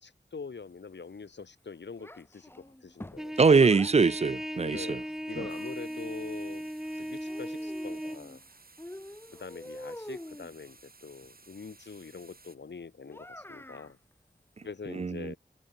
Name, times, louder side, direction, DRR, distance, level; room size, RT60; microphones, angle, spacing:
voice 1, 0.0-3.4 4.6-5.0 5.3-8.4 9.4-14.0 14.6-15.4, left 5 dB, 80° left, 1.9 m, -44 dB
Child speech kid speaking, 2.0-4.0 4.9-6.1 7.3-8.4 8.8-10.5 13.1-13.9, left 1 dB, 15° left, 1.4 m, -46 dB
Trumpet, 3.2-8.2, equal, 5° right, 1.9 m, -37 dB
voice 2, 3.4-5.0 5.4-5.5 14.9-15.3, right 4 dB, 35° right, 0.4 m, -23 dB
sound 1, 5.5-12.6, right 3 dB, 55° right, 3.1 m, -57 dB
wide cardioid pair, 75°, 18 cm